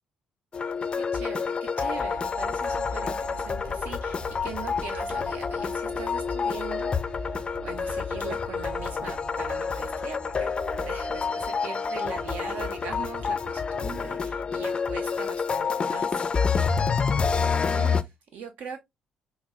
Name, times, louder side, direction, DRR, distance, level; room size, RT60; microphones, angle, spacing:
tilted synth dnb remix, 0.5-18.0, left 5 dB, 35° left, 0.3 m, -28 dB
voice 1, 0.9-10.5 10.8-16.9 17.3-18.8, right 5 dB, 60° right, 0.5 m, -41 dB
sound 1, 1.9-11.3, right 5 dB, 80° right, 1.0 m, -44 dB
5.1 x 2.1 x 2.3 m
figure-of-eight pair, 45°, 3 cm